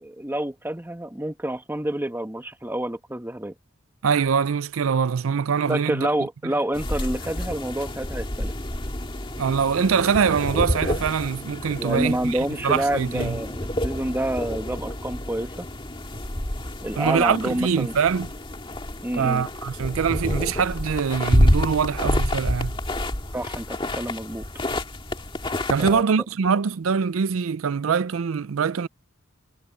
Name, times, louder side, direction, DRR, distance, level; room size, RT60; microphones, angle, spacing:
voice 1, 0.0-3.5 5.7-8.5 11.8-15.7 16.8-17.9 19.0-19.5 23.3-24.4 25.8-26.0, right 1 dB, 10° right, 1.1 m, -28 dB
voice 2, 4.0-6.1 9.4-13.4 17.0-18.3 19.2-22.7 25.7-28.9, right 6 dB, 85° right, 0.5 m, -23 dB
sound 1, 6.7-26.0, left 1 dB, 25° left, 2.0 m, -28 dB
head